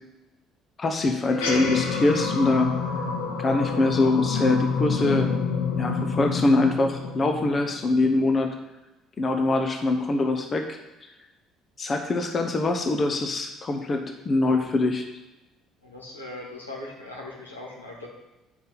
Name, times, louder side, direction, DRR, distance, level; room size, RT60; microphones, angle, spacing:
voice 1, 0.8-2.8 3.4-5.4 5.8-8.5 9.2-11.1 11.8-15.1, left 2 dB, 35° left, 5 dB, 0.9 m, -23 dB
sound 1, 1.2-8.0, left 5 dB, 70° left, 1.0 m, -28 dB
voice 2, 15.8-18.1, left 2 dB, 90° left, -4 dB, 1.6 m, -39 dB
9.2 x 5.4 x 4.0 m, 1.1 s
figure-of-eight pair, 55°, 0 cm